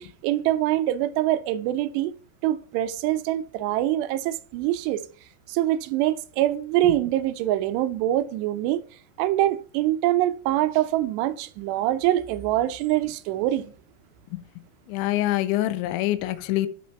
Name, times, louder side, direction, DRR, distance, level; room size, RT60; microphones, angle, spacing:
voice 1, 0.0-2.1 2.4-5.0 5.5-8.8 9.2-13.7, right 14 dB, 80° right, 2.7 m, -24 dB
voice 2, 14.9-16.7, left 15 dB, 90° left, 3.1 m, -25 dB
11.5 x 4.4 x 5.8 m
omnidirectional pair, 5.3 m